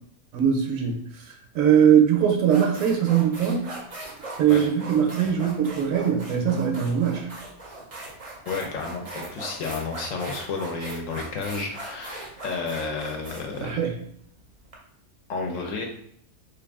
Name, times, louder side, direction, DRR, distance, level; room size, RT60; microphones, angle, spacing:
voice 1, 0.3-1.0 1.5-3.7 4.4-7.3 13.6-13.9, right 8 dB, 70° right, 2 dB, 0.9 m, -21 dB
sound 1, 1.8-2.0 2.4-14.7, right 2 dB, 45° right, 0.5 m, -39 dB
voice 2, 8.5-13.7 15.3-15.9, left 4 dB, 70° left, 2 dB, 0.9 m, -31 dB
3.3 x 2.5 x 3.4 m, 0.68 s
omnidirectional pair, 1.6 m